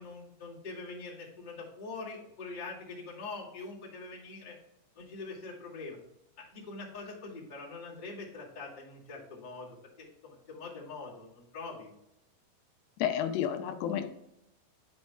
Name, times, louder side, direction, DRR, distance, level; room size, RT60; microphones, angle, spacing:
voice 1, 0.0-4.5 4.9-6.0 6.4-9.7 10.0-11.9, left 3 dB, 20° left, -7 dB, 1.3 m, -43 dB
voice 2, 13.0-14.1, left 10 dB, 85° left, 7 dB, 2.7 m, -30 dB
10.5 x 5.3 x 2.3 m, 0.83 s
omnidirectional pair, 4.8 m